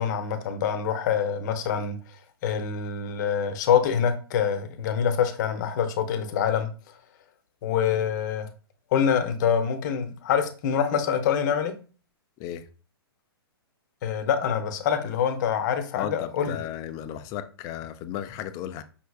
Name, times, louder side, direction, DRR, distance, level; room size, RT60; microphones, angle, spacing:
voice 1, 0.0-2.0 2.4-6.7 7.6-8.5 8.9-11.7 14.0-16.5, left 8 dB, 45° left, 0.8 m, -25 dB
voice 2, 16.0-18.8, left 11 dB, 25° left, 0.4 m, -35 dB
5.5 x 3.3 x 2.3 m
hypercardioid pair, 130°, 13 cm